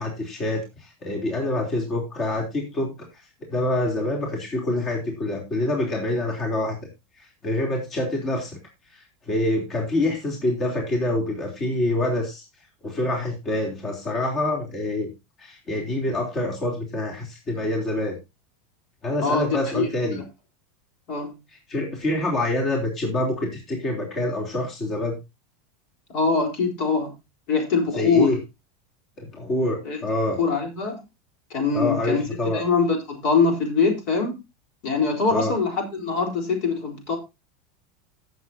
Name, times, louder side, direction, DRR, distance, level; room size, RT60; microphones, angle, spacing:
voice 1, 0.0-6.8 7.2-8.6 8.9-12.5 12.8-15.1 15.4-18.2 19.0-20.2 21.7-25.2 28.0-28.4 29.2-30.4 31.7-32.6 35.3-35.5, left 1 dB, 35° left, 3.4 m, -26 dB
voice 2, 19.2-19.9 21.1-21.3 26.1-27.1 27.5-28.3 29.8-30.0 30.4-31.0 31.5-32.2 32.5-34.4 34.8-37.2, left 4 dB, 60° left, 4.1 m, -23 dB
17.0 x 7.2 x 2.8 m
supercardioid pair, 120°, 0 cm